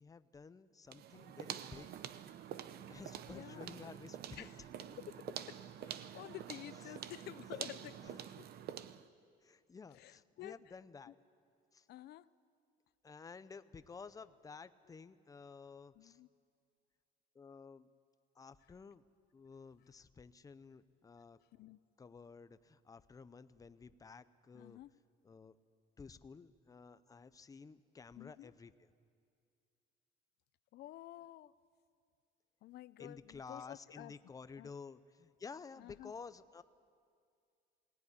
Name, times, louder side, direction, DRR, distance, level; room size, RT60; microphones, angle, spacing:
voice 1, 0.0-1.9 2.9-4.5 6.8-6.9 9.4-11.2 11.7-11.9 13.0-16.2 17.3-17.9 18.3-19.0 19.3-21.4 22.0-24.8 25.2-25.5 26.0-28.7 33.0-36.6, left 5 dB, 20° left, 13 dB, 0.7 m, -53 dB
sound 1, 0.9-9.1, right 10 dB, 60° right, 0.8 m, -47 dB
voice 2, 3.3-3.9 4.4-4.6 4.9-8.5 9.9-10.8 11.1-11.2 11.9-12.3 15.9-16.3 21.5-21.8 24.5-24.9 28.2-28.5 30.7-31.5 32.6-34.2 34.6-34.7 35.8-36.1, left 14 dB, 65° left, 17 dB, 0.6 m, -51 dB
21.0 x 18.0 x 9.9 m, 2.3 s
cardioid pair, 135°, 18 cm